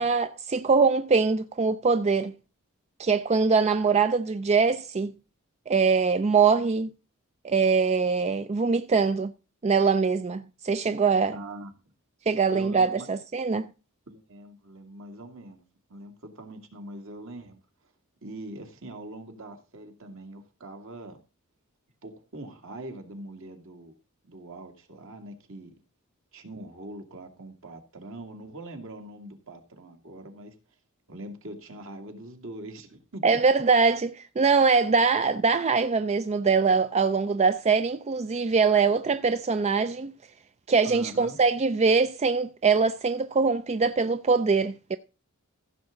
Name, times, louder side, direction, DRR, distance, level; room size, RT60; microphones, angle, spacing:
voice 1, 0.0-2.3 3.0-5.1 5.7-6.9 7.4-9.3 9.6-11.4 12.3-13.7 33.2-40.1 40.7-45.0, right 5 dB, 30° right, 0.4 m, -23 dB
voice 2, 11.3-11.7 12.5-13.1 14.1-15.6 15.9-17.6 18.2-21.2 22.0-23.9 24.2-25.7 26.3-30.5 31.1-33.4 40.8-41.4, right 1 dB, 65° right, 2.3 m, -42 dB
15.5 x 7.0 x 3.8 m
head